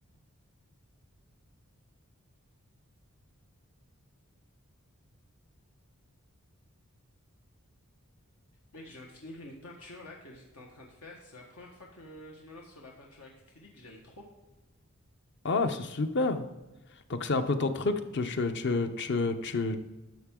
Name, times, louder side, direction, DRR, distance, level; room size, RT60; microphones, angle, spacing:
voice 1, 8.7-14.3, left 1 dB, 85° left, -1 dB, 1.3 m, -48 dB
voice 2, 15.4-16.5 17.1-19.8, left 3 dB, 55° left, 9 dB, 0.7 m, -29 dB
11.5 x 6.6 x 3.7 m, 1.1 s
head